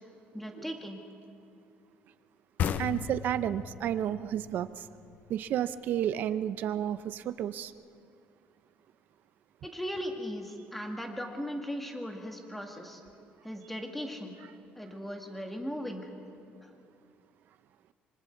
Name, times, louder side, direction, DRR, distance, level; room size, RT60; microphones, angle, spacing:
voice 1, 0.3-1.0 9.6-13.0 13.4-14.4 14.8-16.1, equal, 5° left, 3 dB, 2.0 m, -38 dB
sound 1, 2.6-6.0, left 9 dB, 50° left, 0.6 m, -36 dB
voice 2, 2.8-4.9 5.3-7.7, right 10 dB, 55° right, 13 dB, 0.7 m, -31 dB
26.0 x 25.0 x 4.7 m, 2.4 s
cardioid pair, 155°, 4 cm